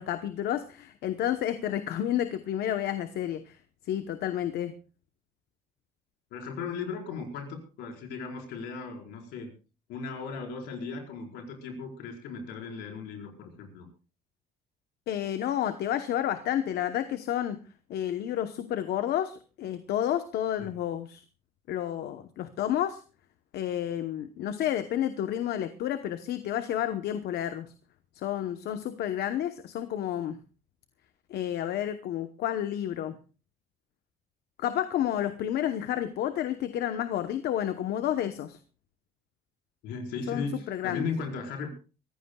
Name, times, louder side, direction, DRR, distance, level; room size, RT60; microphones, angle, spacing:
voice 1, 0.0-3.6 3.8-4.8 15.1-17.6 17.9-21.2 21.7-23.0 23.5-27.7 28.1-30.4 31.3-33.2 34.6-38.6 40.3-41.0, left 11 dB, 70° left, 9 dB, 1.0 m, -30 dB
voice 2, 6.3-9.5 9.9-13.9 20.6-20.7 39.8-41.7, left 4 dB, 85° left, 1 dB, 4.9 m, -37 dB
24.5 x 15.0 x 2.3 m, 0.35 s
cardioid pair, 110°, 17 cm